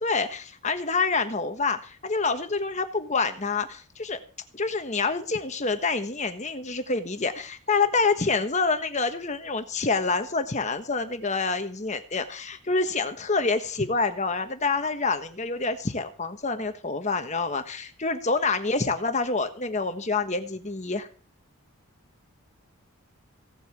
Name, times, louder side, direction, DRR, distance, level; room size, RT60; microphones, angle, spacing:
voice 1, 0.0-4.2 4.5-21.1, left 4 dB, 30° left, 8 dB, 1.3 m, -27 dB
16.5 x 7.9 x 7.2 m, 0.39 s
head